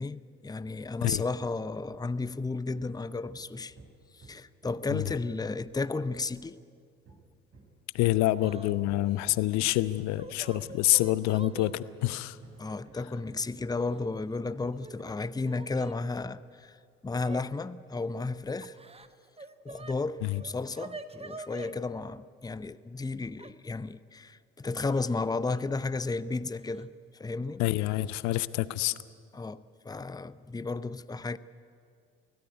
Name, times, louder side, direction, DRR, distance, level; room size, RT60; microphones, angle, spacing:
voice 1, 0.0-3.7 4.1-6.6 12.6-16.8 17.0-18.8 19.6-26.9 27.2-27.6 29.3-31.4, left 3 dB, 15° left, 0.7 m, -33 dB
Hammer, 1.7-5.3 7.0-14.0 14.5-16.4, right 2 dB, 50° right, 5.0 m, -55 dB
voice 2, 7.9-12.4 20.2-20.4 27.6-28.9, left 16 dB, 65° left, 0.7 m, -27 dB
Yell / Crying sobbing, 8.4-8.7 9.0-9.2 9.9-11.7 12.7-12.8 13.8-14.3 14.7-16.0 17.1-17.4 18.6-19.9 20.3-21.7 23.4-23.5 24.7-25.2 25.4-25.6 26.7-26.8 27.3-27.6, right 3 dB, 20° right, 1.3 m, -45 dB
23.5 x 16.5 x 9.4 m
figure-of-eight pair, 45°, 30 cm